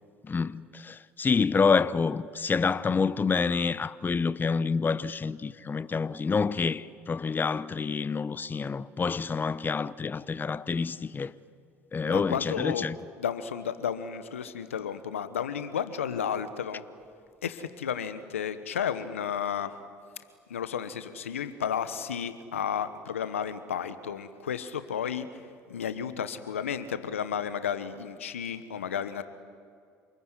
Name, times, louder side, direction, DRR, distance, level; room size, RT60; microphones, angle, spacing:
voice 1, 0.2-11.3 11.9-13.0, left 5 dB, 30° left, 0.9 m, -28 dB
voice 2, 12.0-12.8 13.2-16.8 17.4-19.7 20.5-25.3 25.7-29.2, left 8 dB, 90° left, 1.2 m, -32 dB
28.0 x 21.0 x 9.8 m
hypercardioid pair, 60°, 7 cm